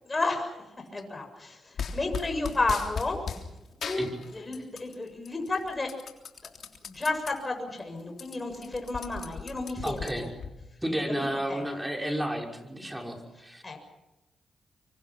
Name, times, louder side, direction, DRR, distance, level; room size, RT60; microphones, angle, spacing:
voice 1, 0.0-0.6 0.9-3.2 3.8-4.0 4.3-5.9 6.4-6.5 6.8-10.3 11.2-11.6 13.6-13.8, left 3 dB, 30° left, 4 dB, 6.9 m, -32 dB
sound 1, 1.8-3.4 3.8-4.9 5.3-7.3 7.8-7.9 8.1-10.5, left 6 dB, 65° left, 3.4 m, -37 dB
voice 2, 9.8-10.3 10.8-13.9, equal, 10° right, 2 dB, 5.6 m, -32 dB
26.0 x 24.5 x 5.9 m, 0.97 s
supercardioid pair, 50°, 0 cm